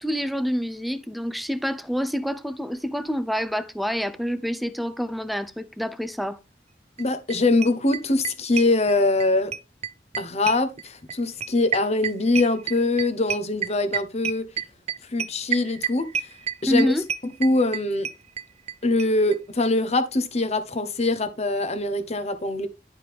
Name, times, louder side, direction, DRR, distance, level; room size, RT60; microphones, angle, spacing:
voice 1, 0.0-6.4 16.7-17.1, equal, ahead, 0.7 m, -27 dB
voice 2, 7.0-9.5 10.2-14.5 15.1-16.1 16.6-16.9 17.4-18.1 18.8-22.7, left 2 dB, 40° left, 1.2 m, -23 dB
sound 1, 7.0-7.1 7.3-7.4 7.6-9.3 9.5-18.7 19.0-19.1 19.3-19.4 19.6-19.7, right 8 dB, 35° right, 0.4 m, -29 dB
11.0 x 5.3 x 3.6 m
head